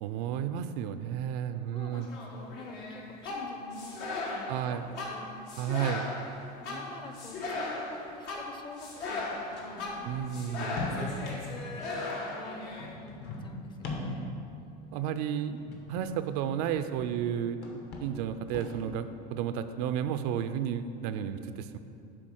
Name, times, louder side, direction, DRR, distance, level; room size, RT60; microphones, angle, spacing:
voice 1, 0.0-2.1 4.5-4.9 5.6-6.1 10.1-10.8 14.9-15.6 15.9-17.6 18.0-21.8, right 9 dB, 75° right, 10 dB, 0.4 m, -32 dB
voice 2, 1.7-4.0 4.3-5.4 6.6-10.0 10.6-14.3, left 3 dB, 20° left, 5 dB, 0.6 m, -47 dB
sound 1, 1.9-12.9, left 2 dB, 75° left, 1.5 m, -37 dB
sound 2, 7.5-7.6 8.1-8.2 9.2-11.7 12.7-14.5 15.6-17.3 17.5-19.0, left 2 dB, 50° left, 1.2 m, -40 dB
7.6 x 3.7 x 6.3 m, 2.6 s
supercardioid pair, 120°, 21 cm